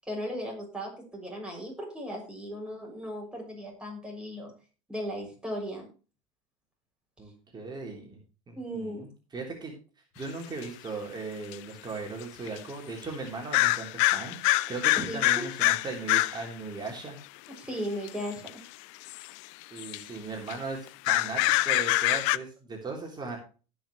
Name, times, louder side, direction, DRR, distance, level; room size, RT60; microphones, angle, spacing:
voice 1, 0.0-4.5 4.9-5.9 8.5-9.0 15.0-15.4 17.6-18.5, equal, 5° right, -1 dB, 6.5 m, -36 dB
voice 2, 7.2-8.2 8.5-9.1 9.3-9.7 10.2-17.2 19.7-23.4, right 3 dB, 25° right, 0 dB, 3.5 m, -38 dB
sound 1, 10.6-10.7 11.5-11.6 12.5-12.6 13.5-16.4 18.1-18.5 19.1-19.3 19.6-20.0 20.5-20.6 20.9-22.4, left 19 dB, 65° left, 0.5 m, -25 dB
18.0 x 6.4 x 3.1 m, 0.35 s
hypercardioid pair, 90°, 17 cm